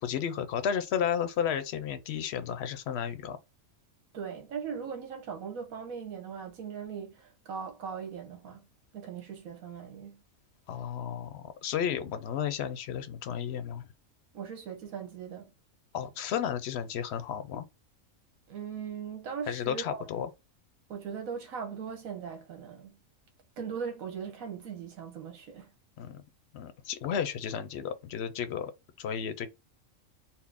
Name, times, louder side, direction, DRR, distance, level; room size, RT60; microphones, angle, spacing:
voice 1, 0.0-3.4 10.7-13.8 15.9-17.6 19.5-20.3 26.0-26.2 26.5-28.7 29.0-29.5, left 8 dB, 65° left, 0.7 m, -33 dB
voice 2, 4.1-8.6 8.9-10.2 14.3-15.5 18.5-20.0 20.9-23.0 23.6-25.7, right 7 dB, 85° right, 1.4 m, -39 dB
4.3 x 2.0 x 3.4 m
omnidirectional pair, 1.4 m